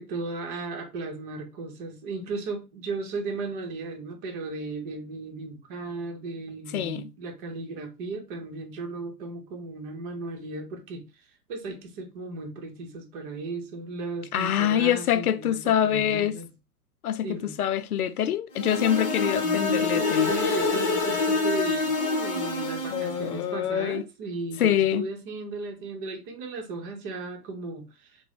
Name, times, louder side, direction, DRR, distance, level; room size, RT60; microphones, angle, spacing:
voice 1, 0.0-11.0 11.5-16.5 17.2-17.5 19.4-28.2, right 3 dB, 35° right, 1.0 m, -36 dB
voice 2, 6.7-7.1 14.3-16.3 17.0-17.3 17.6-20.8 22.9-24.0 24.6-25.1, left 10 dB, 65° left, 0.5 m, -25 dB
sound 1, 18.5-23.3, left 3 dB, 30° left, 0.9 m, -26 dB
3.5 x 2.2 x 3.3 m
figure-of-eight pair, 105°, 47 cm